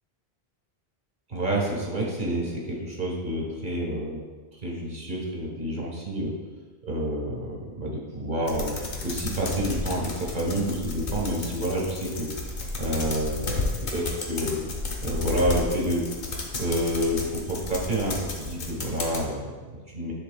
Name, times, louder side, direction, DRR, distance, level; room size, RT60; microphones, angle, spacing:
voice 1, 1.3-4.2 4.6-6.3 6.8-8.7 9.0-12.3 12.8-14.6 15.0-16.2 16.6-20.1, right 1 dB, 50° right, -3 dB, 1.5 m, -28 dB
sound 1, 8.5-19.2, left 3 dB, 60° left, 1.0 m, -33 dB
10.0 x 4.3 x 2.3 m, 1.4 s
omnidirectional pair, 1.1 m